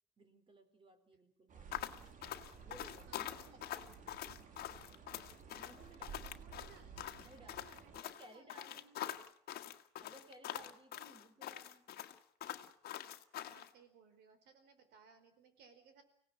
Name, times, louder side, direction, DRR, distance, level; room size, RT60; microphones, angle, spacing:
voice 1, 0.2-2.1 2.6-4.1 5.5-6.3 7.3-9.0 10.0-11.9, right 1 dB, 30° right, 9 dB, 4.0 m, -60 dB
sound 1, 1.5-8.0, right 7 dB, 50° right, 2.5 m, -55 dB
sound 2, 1.7-13.7, left 12 dB, 65° left, 1.5 m, -45 dB
voice 2, 3.1-4.0 6.2-7.1 7.4-8.9 13.5-16.0, right 5 dB, 80° right, 9 dB, 4.7 m, -64 dB
24.5 x 17.5 x 8.9 m, 0.65 s
cardioid pair, 110°, 17 cm